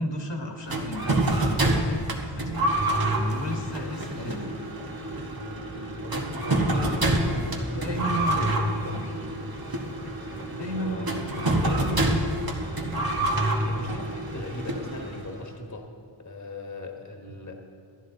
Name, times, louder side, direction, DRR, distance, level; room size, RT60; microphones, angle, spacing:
voice 1, 0.0-2.7 3.2-4.5 7.8-8.5 10.0-12.1 17.3-17.4, equal, 60° left, 2 dB, 1.4 m, -34 dB
sound 1, 0.7-15.4, right 1 dB, 50° right, 1.5 m, -27 dB
voice 2, 4.2-4.5 5.7-9.2 10.1-10.4 10.7-12.0 13.6-15.9 16.2-17.5, left 1 dB, 35° left, 2 dB, 1.4 m, -38 dB
12.5 x 11.0 x 3.9 m, 2.3 s
cardioid pair, 45°, 47 cm